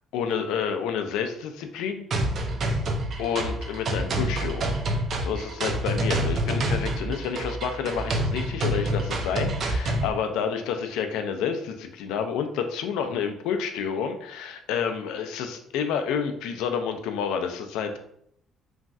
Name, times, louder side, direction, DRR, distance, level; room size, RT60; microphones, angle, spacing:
voice 1, 0.1-2.1 3.2-4.7 5.2-18.0, left 7 dB, 90° left, 6 dB, 0.4 m, -29 dB
sound 1, 2.1-10.1, right 1 dB, 45° right, 0.4 m, -27 dB
3.1 x 2.6 x 2.3 m, 0.69 s
cardioid pair, 130°, 0 cm